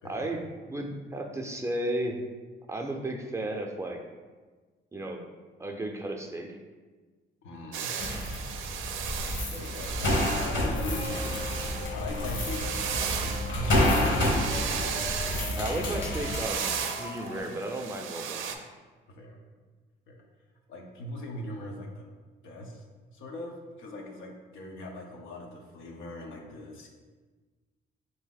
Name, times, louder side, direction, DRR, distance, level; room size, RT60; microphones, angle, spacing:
voice 1, 0.0-2.2 2.7-4.0 4.9-5.2 5.6-6.6 15.6-18.5, right 1 dB, 15° right, 2 dB, 0.4 m, -34 dB
voice 2, 7.4-8.0 9.4-11.5 11.9-14.3 19.1-19.4 20.1-20.2 20.7-22.0 22.4-22.8 23.1-26.9, left 1 dB, 85° left, 1 dB, 0.7 m, -40 dB
sound 1, 7.7-11.9 12.2-15.5 16.0-18.6, right 7 dB, 85° right, 0.4 m, -35 dB
sound 2, 8.0-16.5, left 1 dB, 70° left, 1.2 m, -29 dB
sound 3, 10.4-17.4, left 2 dB, 35° left, 0.6 m, -42 dB
3.5 x 2.7 x 4.0 m, 1.3 s
cardioid pair, 90°, 20 cm